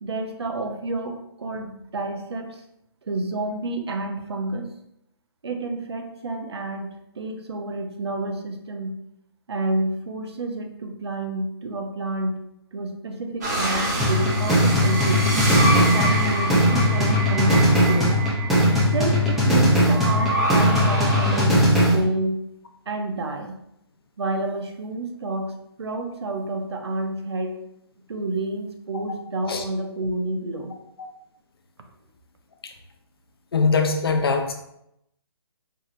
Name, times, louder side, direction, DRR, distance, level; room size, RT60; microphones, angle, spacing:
voice 1, 0.0-2.6 3.0-4.7 5.4-9.0 9.5-12.4 12.7-15.5 15.9-18.1 18.9-22.4 22.9-23.5 24.2-27.6 28.1-30.7, right 2 dB, 75° right, 5 dB, 0.7 m, -29 dB
sound 1, 13.4-21.4, right 1 dB, 40° right, 1.2 m, -27 dB
sound 2, 14.0-22.0, equal, ahead, 0.5 m, -19 dB
voice 2, 33.5-34.5, left 4 dB, 60° left, 4 dB, 0.7 m, -22 dB
4.6 x 3.0 x 2.5 m, 0.80 s
hypercardioid pair, 160°, 14 cm